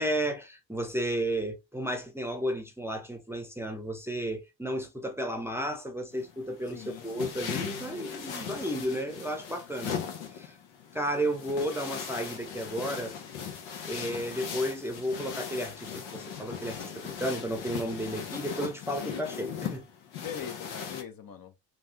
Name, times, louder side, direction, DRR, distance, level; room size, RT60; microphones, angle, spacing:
voice 1, 0.0-10.0 10.3-10.6 10.9-13.2 13.8-19.9, equal, 5° right, 0.7 m, -33 dB
sound 1, 6.1-21.0, left 7 dB, 85° left, 0.9 m, -39 dB
voice 2, 6.7-7.6 20.2-21.5, left 8 dB, 50° left, 0.9 m, -42 dB
3.3 x 2.4 x 2.7 m
supercardioid pair, 55°, 44 cm